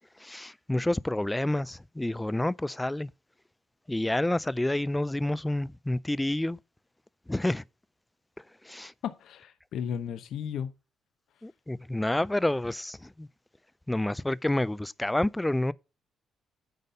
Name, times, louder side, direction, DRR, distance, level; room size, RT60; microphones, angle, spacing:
voice 1, 0.2-3.1 3.9-6.6 7.3-7.6 8.7-8.9 11.4-13.3 13.9-15.7, left 1 dB, 10° left, 0.3 m, -29 dB
voice 2, 9.0-10.7, left 8 dB, 75° left, 0.7 m, -34 dB
9.2 x 4.1 x 5.4 m
cardioid pair, 90°, 0 cm